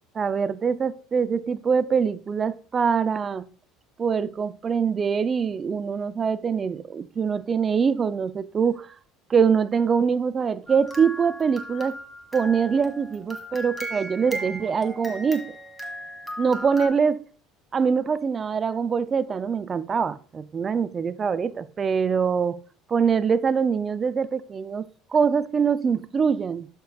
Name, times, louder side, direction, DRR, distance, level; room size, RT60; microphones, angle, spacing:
voice 1, 0.1-3.5 4.0-9.0 9.3-12.0 12.3-15.5 16.4-17.2 17.7-22.6 22.9-26.7, right 6 dB, 30° right, 0.4 m, -24 dB
sound 1, 10.7-16.9, right 1 dB, 5° left, 1.7 m, -37 dB
11.5 x 5.3 x 2.4 m
supercardioid pair, 100°, 0 cm